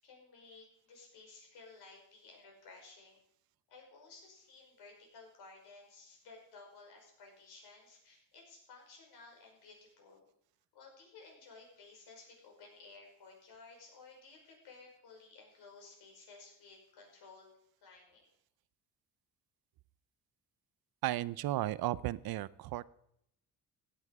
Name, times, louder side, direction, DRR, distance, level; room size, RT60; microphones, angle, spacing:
voice 1, 0.0-3.2 3.7-10.2 10.7-17.5 17.8-18.3, left 3 dB, 85° left, 0 dB, 5.6 m, -56 dB
voice 2, 21.0-22.9, right 15 dB, 70° right, 19 dB, 0.6 m, -34 dB
16.0 x 9.6 x 4.8 m, 0.71 s
cardioid pair, 125°, 38 cm